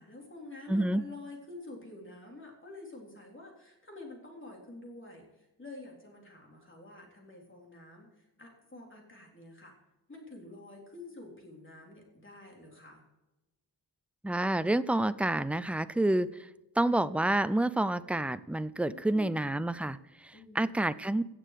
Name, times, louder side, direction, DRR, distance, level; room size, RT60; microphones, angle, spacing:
voice 1, 0.0-9.7 10.1-13.0 18.9-19.5 20.3-20.7, left 2 dB, 30° left, 0 dB, 3.6 m, -48 dB
voice 2, 0.7-1.0 14.2-16.3 16.8-20.0 20.2-21.2, right 1 dB, 5° right, 15 dB, 0.3 m, -28 dB
17.5 x 6.6 x 5.0 m, 1.0 s
wide cardioid pair, 115°, 42 cm